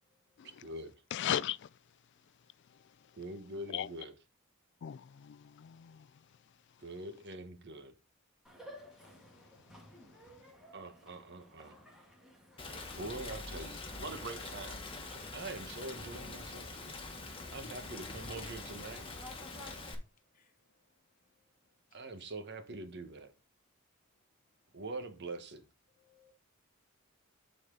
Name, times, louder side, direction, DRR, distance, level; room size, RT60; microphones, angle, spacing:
voice 1, 0.4-1.0 3.2-4.1 6.8-7.9 10.7-11.8 13.0-14.8 15.3-16.9 17.3-19.0 21.9-23.3 24.7-25.6, right 2 dB, 55° right, 1.2 m, -44 dB
voice 2, 1.1-1.7 2.7-2.9 3.7-3.9 4.8-6.2, left 10 dB, 60° left, 0.3 m, -37 dB
sound 1, 8.4-19.7, left 1 dB, 5° right, 1.9 m, -55 dB
Rain, 12.6-19.9, left 3 dB, 25° left, 1.4 m, -44 dB
voice 3, 26.0-26.3, left 3 dB, 40° left, 1.0 m, -59 dB
9.7 x 4.3 x 3.8 m
head